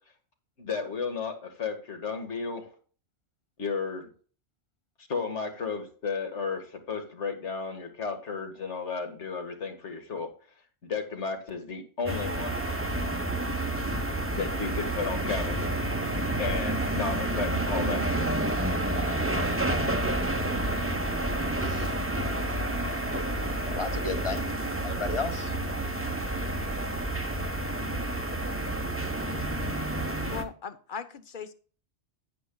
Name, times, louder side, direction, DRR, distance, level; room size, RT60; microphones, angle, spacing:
voice 1, 0.6-2.7 3.6-4.1 5.1-10.3 10.8-12.6 14.4-15.6 16.4-18.3, left 5 dB, 75° left, 5 dB, 2.0 m, -33 dB
sound 1, 12.1-30.4, right 1 dB, 15° right, 0.8 m, -29 dB
voice 2, 21.6-21.9 23.6-24.4 24.8-25.6, left 3 dB, 30° left, 7 dB, 1.0 m, -34 dB
voice 3, 30.3-31.5, left 6 dB, 50° left, 10 dB, 1.0 m, -38 dB
10.0 x 9.9 x 2.3 m, 0.41 s
omnidirectional pair, 1.2 m